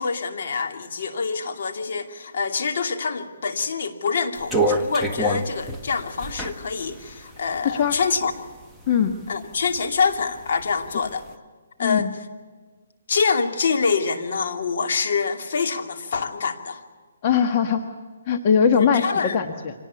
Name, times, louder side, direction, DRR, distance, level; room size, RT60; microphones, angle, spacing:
voice 1, 0.0-8.3 9.3-11.2 11.8-12.1 13.1-16.8 18.8-19.4, left 5 dB, 60° left, 5 dB, 2.7 m, -25 dB
sound 1, 4.4-8.3 8.8-9.8 10.1-11.1, right 1 dB, ahead, 1.4 m, -27 dB
voice 2, 7.6-8.0 8.9-9.1 11.8-12.1 17.2-17.8 18.3-19.1 19.3-19.7, left 7 dB, 35° left, 5 dB, 1.5 m, -20 dB
25.5 x 19.0 x 8.4 m, 1.5 s
hypercardioid pair, 155°, 0 cm